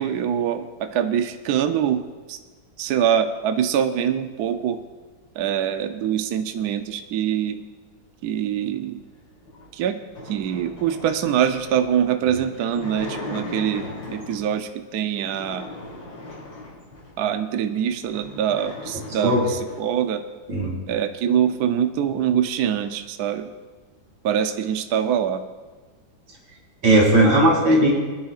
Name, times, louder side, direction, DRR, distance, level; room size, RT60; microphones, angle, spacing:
voice 1, 0.0-2.0 2.3-2.4 2.8-4.8 5.4-7.6 8.2-9.0 9.7-10.0 10.3-13.9 14.1-15.6 17.2-20.2 20.9-23.5 24.2-25.4, right 9 dB, 65° right, 7 dB, 1.0 m, -24 dB
sound 1, 9.4-14.6 15.2-17.2 17.7-17.8 18.0-19.9, left 2 dB, 75° left, 3.9 m, -38 dB
voice 2, 26.8-27.9, right 1 dB, 85° right, -2 dB, 3.6 m, -16 dB
25.0 x 10.5 x 2.4 m, 1.3 s
omnidirectional pair, 2.1 m